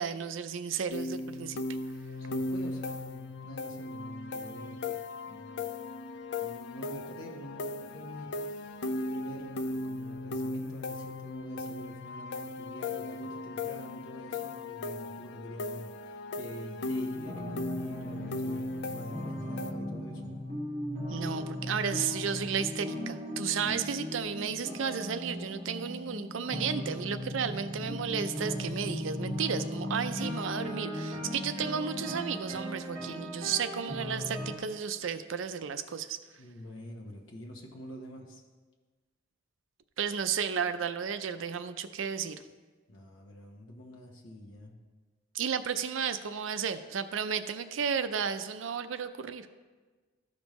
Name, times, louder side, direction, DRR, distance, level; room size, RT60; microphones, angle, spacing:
voice 1, 0.0-1.6 21.1-36.2 40.0-42.4 45.3-49.5, right 7 dB, 75° right, 10 dB, 0.5 m, -33 dB
sound 1, 0.9-19.7, left 2 dB, 60° left, 0.4 m, -37 dB
voice 2, 2.2-5.0 5.3-5.7 6.4-20.3 36.4-38.4 42.9-44.7, equal, 90° left, 0 dB, 1.0 m, -46 dB
sound 2, 17.1-34.6, left 1 dB, 35° right, 1.9 m, -37 dB
13.5 x 5.2 x 3.1 m, 1.4 s
head